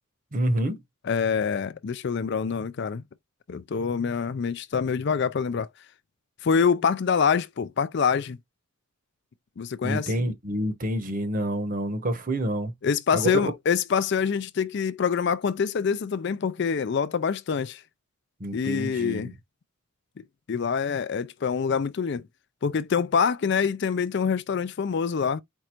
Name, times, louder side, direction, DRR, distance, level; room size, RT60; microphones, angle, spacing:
voice 1, 0.3-0.8 9.8-12.7 13.1-13.5 18.4-19.3, right 1 dB, 40° right, 0.9 m, -28 dB
voice 2, 1.0-3.0 3.5-5.7 6.4-8.4 9.6-10.1 12.8-17.8 18.5-19.3 20.2-22.3 22.6-25.4, left 6 dB, 50° left, 0.4 m, -25 dB
4.6 x 2.5 x 4.3 m
head